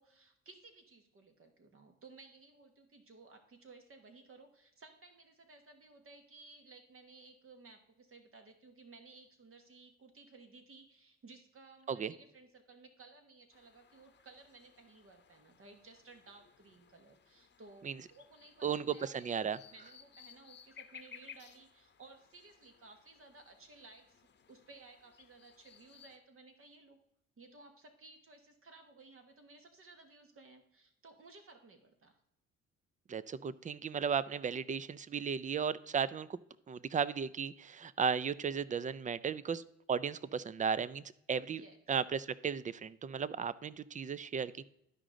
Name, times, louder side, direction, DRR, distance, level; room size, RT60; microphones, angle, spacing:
voice 1, 0.0-19.1 19.7-27.0 27.4-32.2 41.5-41.8, right 3 dB, 45° right, 6 dB, 1.3 m, -58 dB
sound 1, 13.5-26.2, left 8 dB, 35° left, 0.9 m, -59 dB
voice 2, 18.6-19.6 33.1-36.4 36.7-39.6 39.9-41.6 41.9-44.6, right 6 dB, 25° right, 18 dB, 0.4 m, -35 dB
12.0 x 5.0 x 3.8 m, 0.78 s
cardioid pair, 90°, 30 cm